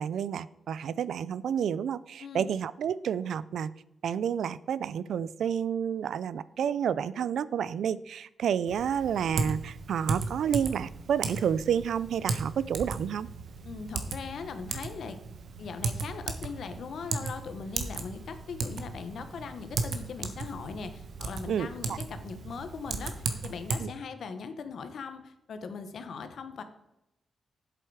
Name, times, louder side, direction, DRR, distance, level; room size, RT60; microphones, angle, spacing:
voice 1, 0.0-3.7 4.0-13.3 21.5-22.0 23.8-23.9, right 8 dB, 85° right, 18 dB, 0.3 m, -30 dB
voice 2, 2.2-2.5 13.6-15.2 15.6-26.6, left 5 dB, 70° left, 9 dB, 1.0 m, -40 dB
Typing, 8.7-23.8, right 4 dB, 70° right, 1.1 m, -36 dB
8.0 x 7.6 x 4.8 m, 0.84 s
wide cardioid pair, 120°, 0 cm